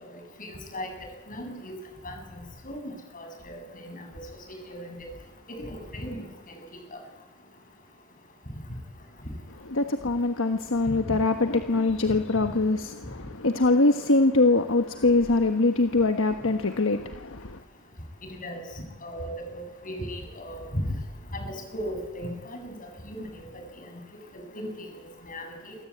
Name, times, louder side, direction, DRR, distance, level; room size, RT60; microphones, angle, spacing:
voice 1, 0.4-0.9 1.3-1.7 2.0-2.1 2.6-4.2 4.7-5.1 5.6-6.2 6.9-7.0 18.4-18.6 19.0-20.8 21.3-22.7 23.0-23.4 24.5-24.9 25.2-25.8, equal, 40° left, 7.6 m, -36 dB
voice 2, 9.6-17.6, left 2 dB, 65° left, 1.3 m, -23 dB
28.0 x 24.5 x 8.7 m
head